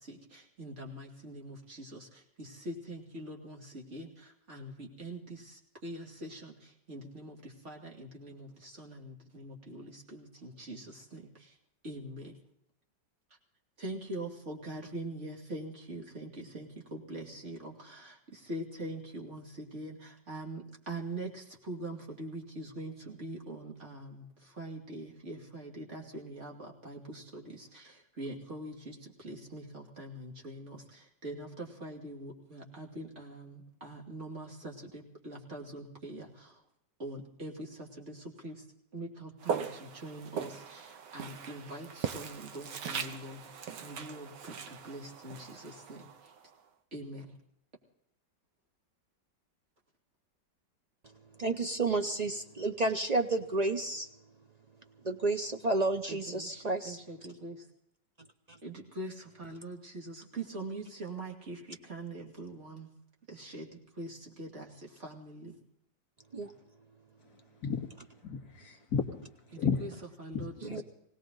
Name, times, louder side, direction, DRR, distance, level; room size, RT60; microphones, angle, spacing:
voice 1, 0.0-11.6 11.8-12.4 13.8-36.6 37.0-38.7 38.9-43.5 43.8-46.3 46.9-47.4 56.1-57.7 58.6-62.9 63.3-65.6 69.5-69.9 70.2-70.8, right 1 dB, 40° right, 0 dB, 2.9 m, -43 dB
Walk footsteps, 39.4-46.5, right 7 dB, 75° right, 1.6 m, -40 dB
voice 2, 51.4-54.1 55.0-57.0 66.3-66.5 70.6-70.8, right 2 dB, 55° right, 7 dB, 0.4 m, -31 dB
voice 3, 67.6-67.9 68.2-69.3 69.6-69.9 70.3-70.8, left 6 dB, 55° left, 5 dB, 2.5 m, -33 dB
20.5 x 18.0 x 3.9 m, 0.77 s
omnidirectional pair, 1.9 m